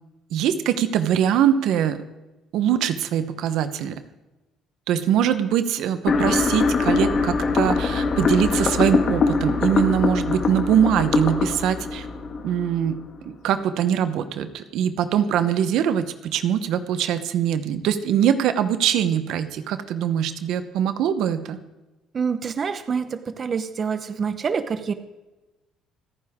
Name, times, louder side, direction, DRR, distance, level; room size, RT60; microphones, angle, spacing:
voice 1, 0.3-2.0 2.5-4.0 4.9-12.1 12.4-13.0 13.2-21.6, right 9 dB, 75° right, 11 dB, 0.9 m, -22 dB
sound 1, 6.1-13.1, left 4 dB, 45° left, 1.8 m, -23 dB
voice 2, 22.1-24.9, right 6 dB, 35° right, 10 dB, 0.9 m, -26 dB
25.5 x 9.7 x 3.6 m, 1.1 s
cardioid pair, 115°, 0 cm